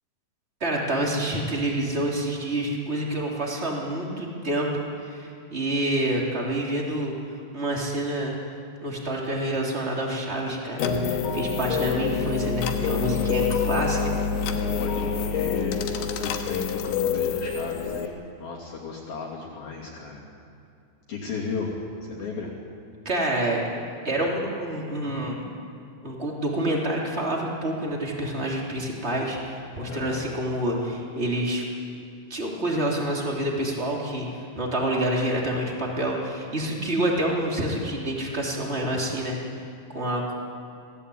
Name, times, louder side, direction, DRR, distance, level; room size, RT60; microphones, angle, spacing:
voice 1, 0.6-4.7 5.0-7.1 7.5-8.4 8.8-14.2 23.0-23.6 24.0-25.4 26.0-31.7 32.3-39.4 39.9-40.3, right 1 dB, 15° right, -2 dB, 2.6 m, -27 dB
sound 1, 10.8-18.1, left 6 dB, 80° left, 3.6 m, -26 dB
voice 2, 14.8-18.1 18.4-20.2 21.1-22.5 29.9-30.2, left 4 dB, 55° left, -4 dB, 4.1 m, -34 dB
25.0 x 17.5 x 8.6 m, 2.5 s
omnidirectional pair, 5.4 m